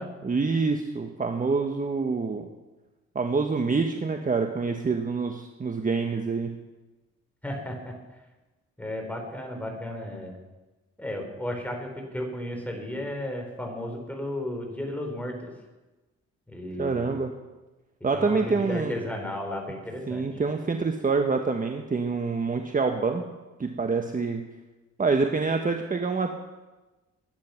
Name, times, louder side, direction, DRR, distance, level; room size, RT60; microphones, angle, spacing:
voice 1, 0.2-2.5 3.1-6.5 16.8-17.3 18.0-19.0 20.1-23.2 23.6-24.4 25.0-26.3, right 4 dB, 25° right, 4 dB, 1.4 m, -26 dB
voice 2, 7.4-7.9 8.8-10.4 11.0-15.5 16.5-17.2 18.1-20.4, left 1 dB, 5° left, 2 dB, 4.7 m, -34 dB
21.0 x 10.5 x 6.0 m, 1.1 s
cardioid pair, 90°, 30 cm